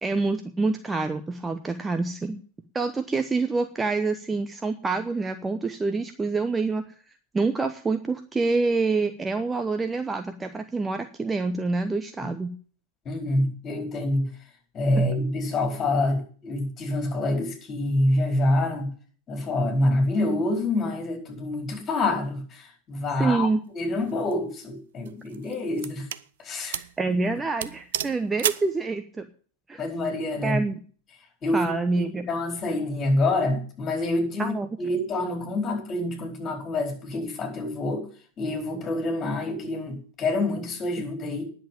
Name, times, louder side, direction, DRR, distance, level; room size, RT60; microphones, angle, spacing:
voice 1, 0.0-2.4 2.7-6.8 7.3-12.5 15.0-15.1 23.2-23.6 27.0-29.3 29.7-29.8 30.4-30.8 31.5-32.3 34.4-34.8, right 3 dB, 15° right, 8 dB, 0.8 m, -26 dB
voice 2, 13.0-14.3 14.7-18.9 19.3-23.5 23.7-26.1 26.4-26.8 29.8-30.6 31.4-38.1 38.4-41.4, left 2 dB, 25° left, 3 dB, 4.6 m, -27 dB
sound 1, 24.0-24.3 25.1-26.3 26.7-27.0 27.3-27.4 27.6-28.7, right 11 dB, 60° right, 0.5 m, -31 dB
10.5 x 7.1 x 8.8 m, 0.42 s
figure-of-eight pair, 90°, 0 cm